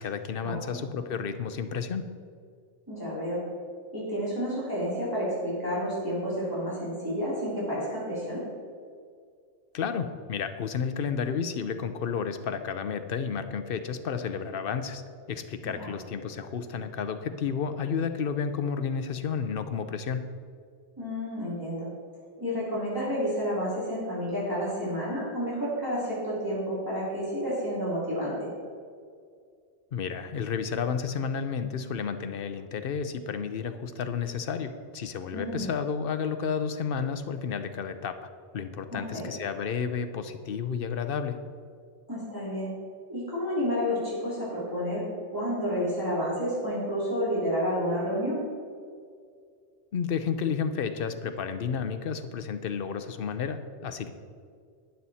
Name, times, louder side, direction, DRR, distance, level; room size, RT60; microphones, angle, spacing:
voice 1, 0.0-2.1 9.7-15.0 15.3-20.2 29.9-38.3 38.5-41.4 49.9-54.1, left 6 dB, 60° left, 9 dB, 0.9 m, -31 dB
voice 2, 2.9-3.4 3.9-8.4 15.6-15.9 21.0-21.9 22.4-28.5 35.3-35.7 38.9-39.3 42.1-42.7 43.1-45.0 45.3-48.4, equal, 20° right, -9 dB, 3.2 m, -30 dB
12.0 x 9.3 x 4.2 m, 2.2 s
omnidirectional pair, 1.1 m